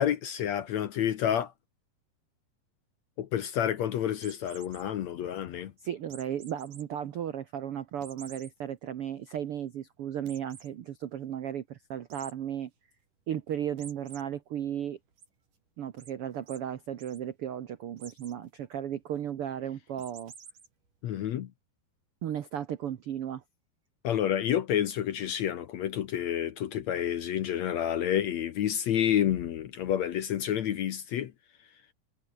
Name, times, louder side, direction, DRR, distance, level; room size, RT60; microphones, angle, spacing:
voice 1, 0.0-1.5 3.2-5.7 21.0-21.5 24.0-31.3, left 10 dB, 65° left, 1.9 m, -29 dB
sound 1, 4.2-4.8 6.1-6.8 7.3-7.4 8.0-8.5 9.0-9.1 9.4-9.5 10.3-10.7 12.1-12.3 13.8-14.2 14.7-15.3 16.0-16.1 16.5-16.6 16.9-17.2 18.0-18.4 20.0-20.7, right 6 dB, 60° right, 5.4 m, -49 dB
voice 2, 5.8-12.7 13.3-15.0 15.8-20.3 22.2-23.4, right 10 dB, 75° right, 1.3 m, -35 dB
omnidirectional pair, 4.3 m